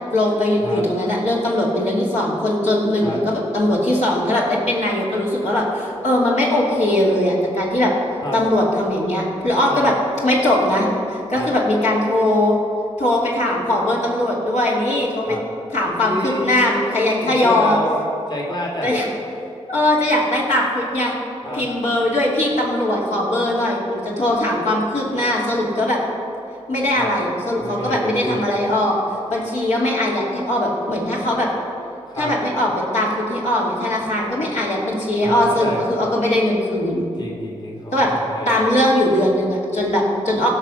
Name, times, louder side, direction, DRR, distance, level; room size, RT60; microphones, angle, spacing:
voice 1, 0.1-7.9 8.3-9.9 10.2-12.6 13.0-15.4 15.7-17.8 18.8-19.1 19.7-21.2 21.5-26.0 26.7-29.0 29.3-31.5 32.2-37.1 37.9-38.1 38.5-40.5, left 1 dB, 75° left, -5 dB, 2.8 m, -20 dB
voice 2, 16.0-18.0 18.3-18.9 21.4-21.6 26.9-27.1 27.6-28.4 32.1-32.3 35.2-35.8 37.2-38.6, left 1 dB, 35° left, -1 dB, 2.0 m, -28 dB
16.5 x 5.8 x 5.6 m, 2.6 s
cardioid pair, 45°, 12 cm